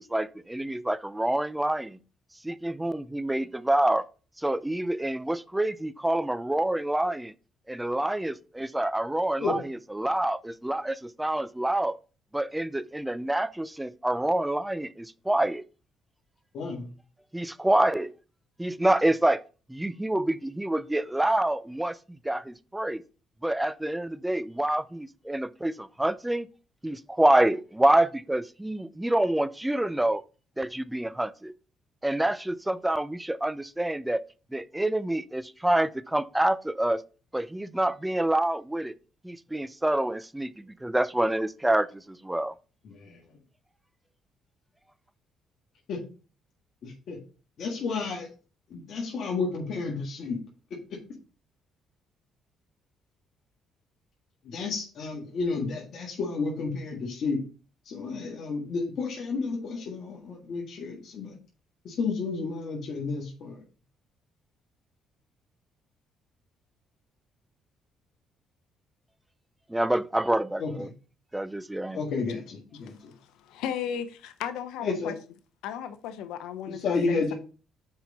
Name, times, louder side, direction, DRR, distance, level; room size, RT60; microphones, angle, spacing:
voice 1, 0.0-2.0 2.4-4.0 4.4-7.3 7.7-12.0 12.3-15.6 17.3-18.1 18.6-19.4 19.7-23.0 23.4-26.5 26.8-30.2 30.6-31.5 32.0-34.2 34.5-37.0 37.3-38.9 39.2-42.5 69.7-70.9 71.3-72.0, right 1 dB, 10° right, 0.5 m, -27 dB
voice 2, 16.5-16.9 42.8-43.2 45.9-46.1 46.8-47.2 47.6-48.3 48.7-50.4 50.9-51.0 54.4-57.4 57.8-61.4 61.8-63.6 70.6-70.9 71.9-73.1 74.8-75.1 76.7-77.3, left 4 dB, 65° left, 1.6 m, -31 dB
voice 3, 73.4-75.1 75.6-77.3, left 9 dB, 80° left, 0.7 m, -35 dB
6.4 x 5.0 x 4.0 m
supercardioid pair, 70°, 0 cm